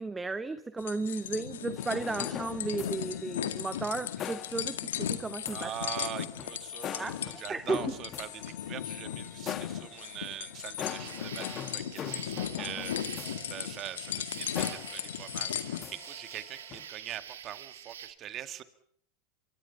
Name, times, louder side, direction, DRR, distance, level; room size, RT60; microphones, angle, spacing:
voice 1, 0.0-5.7 7.0-7.2 7.5-7.8, right 3 dB, 15° right, 12 dB, 1.2 m, -34 dB
sound 1, 0.8-15.8, left 10 dB, 80° left, 1.9 m, -37 dB
sound 2, 1.8-16.9, left 10 dB, 40° left, 1.5 m, -43 dB
voice 2, 5.4-18.6, right 11 dB, 40° right, 12 dB, 2.1 m, -43 dB
sound 3, 10.8-18.1, right 10 dB, 80° right, 1.8 m, -46 dB
25.5 x 23.5 x 5.8 m, 0.63 s
hypercardioid pair, 95°, 0 cm